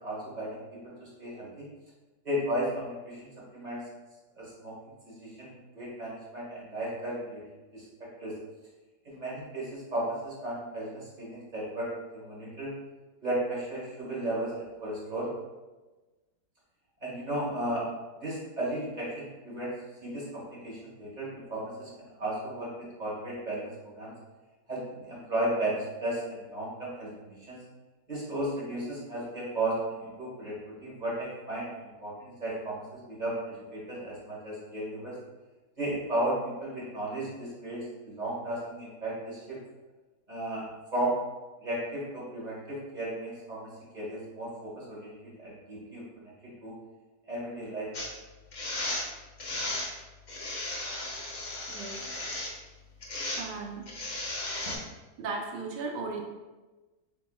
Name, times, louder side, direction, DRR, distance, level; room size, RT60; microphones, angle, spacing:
voice 1, 0.0-0.6 0.8-1.7 2.2-3.8 4.4-4.7 5.1-7.4 7.7-8.3 9.0-12.7 13.2-15.3 17.0-17.8 18.2-19.7 20.0-24.1 24.7-27.6 28.1-35.2 35.8-39.6 40.3-41.2 41.6-43.7 43.9-45.1 45.4-46.7 47.3-47.9 54.6-54.8, right 1 dB, 30° right, -6 dB, 1.3 m, -35 dB
sound 1, 47.9-48.1 48.5-49.1 49.4-49.9 50.3-52.5 53.0-53.4 53.9-54.8, left 2 dB, 55° left, 0.5 m, -35 dB
voice 2, 51.7-52.1 53.4-53.9 55.2-56.2, right 4 dB, 80° right, 0 dB, 1.4 m, -36 dB
6.9 x 2.9 x 2.3 m, 1.2 s
omnidirectional pair, 1.8 m